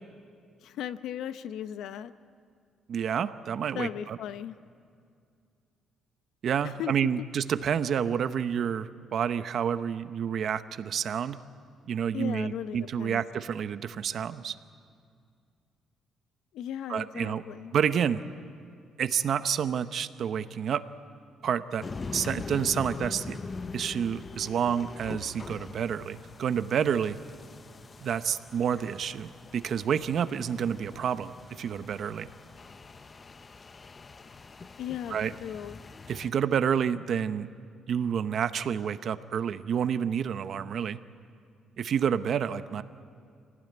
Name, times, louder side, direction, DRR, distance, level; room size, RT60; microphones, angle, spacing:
voice 1, 0.6-2.1 3.7-4.5 6.6-6.9 12.1-13.2 16.5-17.7 34.8-35.2 35.4-35.8, left 10 dB, 75° left, 13 dB, 0.8 m, -37 dB
voice 2, 2.9-4.2 6.4-11.4 11.9-14.5 16.9-17.4 17.7-18.2 19.0-20.8 21.4-21.8 22.1-23.4 23.7-27.2 28.0-32.3 35.1-35.3 36.1-37.5 37.9-41.0 41.8-42.8, right 8 dB, 50° right, 12 dB, 0.8 m, -29 dB
sound 1, 21.8-36.3, left 4 dB, 25° left, 0.6 m, -43 dB
25.5 x 17.5 x 9.4 m, 2.3 s
cardioid pair, 160°, 0 cm